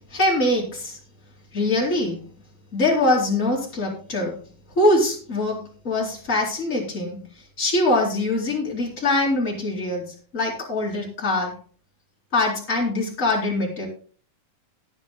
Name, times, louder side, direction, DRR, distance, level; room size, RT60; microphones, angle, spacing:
voice 1, 0.1-1.0 1.5-2.2 2.7-4.4 4.8-7.2 7.6-11.5 12.3-13.9, left 2 dB, 25° left, -3 dB, 4.4 m, -23 dB
18.5 x 9.4 x 2.3 m, 0.41 s
omnidirectional pair, 3.6 m